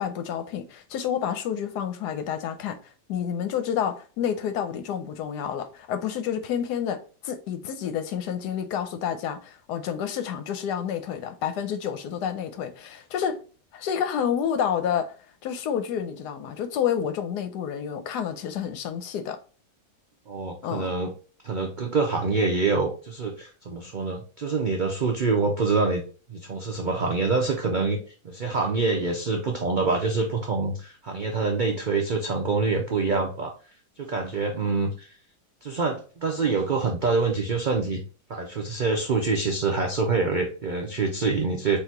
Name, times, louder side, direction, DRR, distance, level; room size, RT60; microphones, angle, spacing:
voice 1, 0.0-2.8 3.1-13.4 13.7-15.1 15.4-19.4 20.6-20.9, left 8 dB, 80° left, 1.2 m, -29 dB
voice 2, 20.3-21.1 21.4-26.0 26.3-28.0 28.2-33.5 34.0-35.2 35.6-38.0 38.3-41.8, right 4 dB, 75° right, 0.4 m, -26 dB
4.1 x 2.8 x 4.4 m
omnidirectional pair, 1.8 m